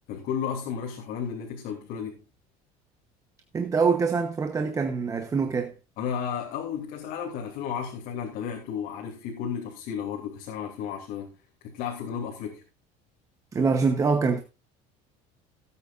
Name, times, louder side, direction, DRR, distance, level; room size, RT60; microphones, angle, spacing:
voice 1, 0.1-2.2 6.0-11.4 11.6-12.6, left 7 dB, 60° left, 2.8 m, -33 dB
voice 2, 3.5-5.7 13.5-14.4, right 5 dB, 20° right, 1.0 m, -24 dB
17.5 x 8.5 x 2.5 m
cardioid pair, 155°, 17 cm